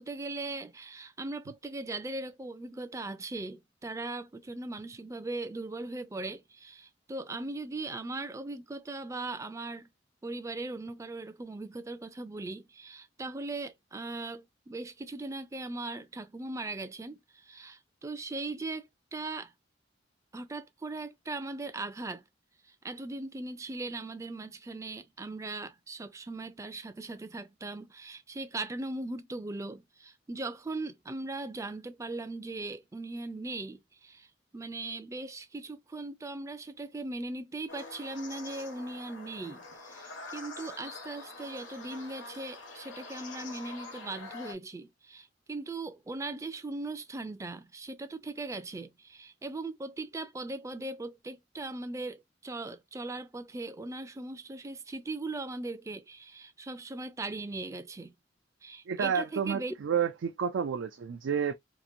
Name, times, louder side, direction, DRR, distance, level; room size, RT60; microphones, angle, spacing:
voice 1, 0.0-9.9 10.2-19.5 20.3-22.2 22.8-34.3 34.5-58.1 58.6-59.7, right 2 dB, 15° right, 0.4 m, -39 dB
sound 1, 37.7-44.5, left 3 dB, 85° left, 1.0 m, -45 dB
voice 2, 58.9-61.5, right 7 dB, 90° right, 0.4 m, -30 dB
2.9 x 2.5 x 2.5 m
head